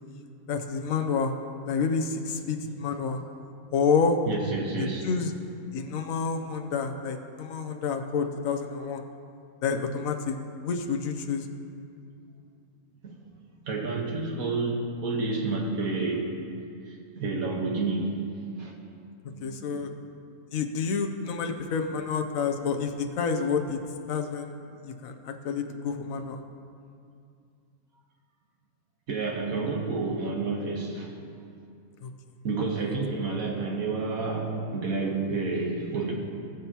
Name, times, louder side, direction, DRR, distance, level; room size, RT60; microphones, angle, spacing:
voice 1, 0.5-1.3 1.7-3.2 3.7-4.2 4.8-5.3 5.7-9.0 9.6-10.4 10.6-11.4 19.4-19.9 20.5-23.8 24.1-24.5 24.8-26.4 32.0-32.1, left 5 dB, 65° left, 5 dB, 1.2 m, -29 dB
voice 2, 4.3-5.1 13.0-13.2 13.7-16.3 16.8-18.1 18.6-18.7 19.3-19.9 29.1-31.1 32.4-36.1, right 3 dB, 65° right, 0 dB, 1.8 m, -30 dB
20.5 x 7.2 x 2.9 m, 2.4 s
omnidirectional pair, 1.6 m